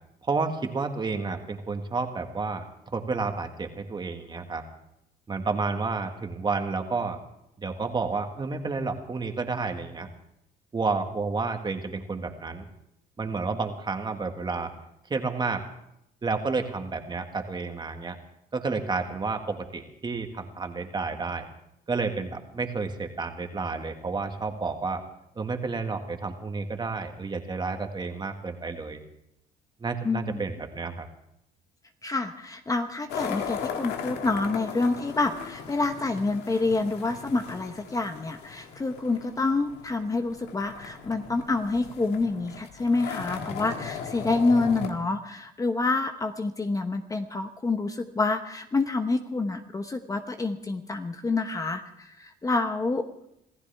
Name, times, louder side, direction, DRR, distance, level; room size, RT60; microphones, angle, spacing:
voice 1, 0.2-4.6 5.3-7.2 7.6-10.1 10.7-12.7 13.2-14.7 15.1-15.6 16.2-18.2 18.5-21.4 21.9-25.0 25.4-29.0 29.8-31.1, right 4 dB, 25° right, 5 dB, 1.9 m, -30 dB
voice 2, 30.0-30.4 32.0-53.1, left 3 dB, 20° left, 7 dB, 1.1 m, -27 dB
sound 1, 33.1-44.9, left 7 dB, 80° left, 1.9 m, -38 dB
26.0 x 15.0 x 3.5 m, 0.79 s
cardioid pair, 110°, 17 cm